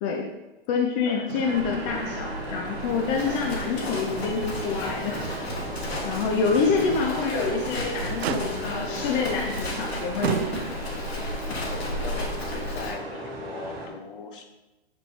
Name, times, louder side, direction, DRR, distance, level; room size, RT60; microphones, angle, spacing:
voice 1, 0.7-5.3 6.0-10.5, left 5 dB, 30° left, 2 dB, 0.6 m, -27 dB
Motor vehicle (road), 1.3-1.9 2.2-2.3 2.8-3.8 4.2-4.3 4.9-5.0 7.2-7.7 8.2-8.9 9.7-9.8 10.2-11.0 12.1-12.2, right 9 dB, 90° right, 0.5 m, -33 dB
sound 1, 1.4-13.9, right 2 dB, 25° right, 2.3 m, -36 dB
Livestock farm animals working animals, 1.6-12.9, left 1 dB, 85° left, 1.7 m, -34 dB
voice 2, 6.3-6.6 11.5-14.4, left 4 dB, 55° left, 4 dB, 1.2 m, -40 dB
7.3 x 5.2 x 3.3 m, 1.0 s
hypercardioid pair, 140°, 31 cm